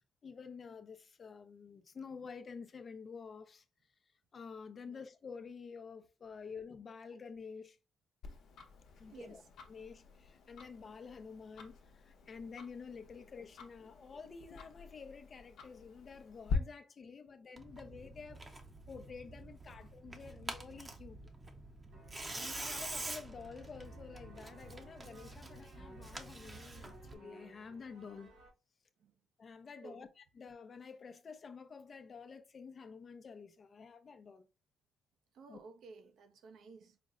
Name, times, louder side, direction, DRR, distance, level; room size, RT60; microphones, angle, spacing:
voice 1, 0.2-3.6 4.3-7.8 9.0-9.4 9.7-18.6 18.9-21.2 22.3-28.3 29.4-34.5 35.5-35.6, left 5 dB, 45° left, 0.6 m, -50 dB
Tick-tock, 8.2-16.5, left 4 dB, 70° left, 0.8 m, -46 dB
voice 2, 9.0-9.4 13.2-13.3 29.0-29.1 29.8-30.0 35.3-37.0, right 4 dB, 70° right, 0.6 m, -54 dB
Tearing, 17.6-27.2, right 2 dB, 25° right, 0.7 m, -47 dB
sound 1, 21.9-28.5, right 1 dB, 85° right, 1.6 m, -58 dB
5.0 x 2.1 x 3.7 m
cardioid pair, 90°, 0 cm